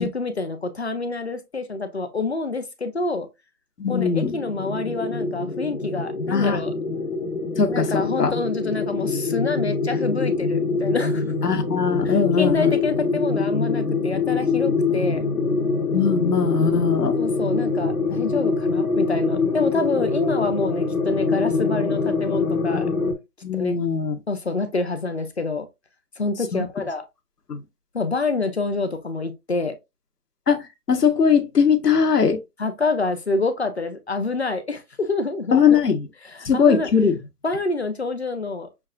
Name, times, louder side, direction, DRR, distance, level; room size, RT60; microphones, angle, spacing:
voice 1, 0.0-3.3 3.9-6.7 7.7-11.2 12.0-15.2 17.2-22.9 23.5-23.8 24.3-25.7 26.2-27.0 27.9-29.7 32.6-35.8 36.2-36.9 37.4-38.9, left 3 dB, 45° left, 0.6 m, -27 dB
voice 2, 3.8-4.3 6.3-6.6 7.6-8.3 11.4-12.7 15.9-17.2 23.4-24.2 26.5-26.6 27.5-27.6 30.5-32.4 35.5-36.1 36.4-37.2, left 6 dB, 90° left, 1.2 m, -20 dB
sound 1, 3.9-23.1, left 4 dB, 70° left, 1.2 m, -24 dB
6.3 x 2.4 x 2.3 m
hypercardioid pair, 165°, 46 cm